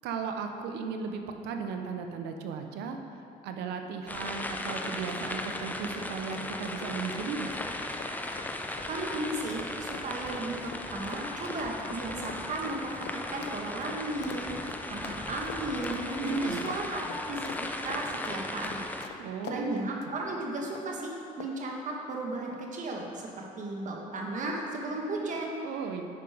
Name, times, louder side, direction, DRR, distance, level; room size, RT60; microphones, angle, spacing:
voice 1, 0.0-3.0 3.4-7.5 16.2-16.6 19.2-19.8 25.6-26.1, right 5 dB, 85° right, 5 dB, 0.8 m, -35 dB
sound 1, 4.1-19.1, left 1 dB, 10° left, 0.5 m, -37 dB
sound 2, 4.8-19.6 20.0-20.2 20.7-21.0 21.4-21.7, left 8 dB, 80° left, 0.6 m, -45 dB
voice 2, 8.9-18.8 19.2-23.3 23.6-25.6, right 2 dB, 45° right, 0 dB, 1.4 m, -35 dB
9.1 x 5.3 x 4.9 m, 2.6 s
cardioid pair, 110°, 17 cm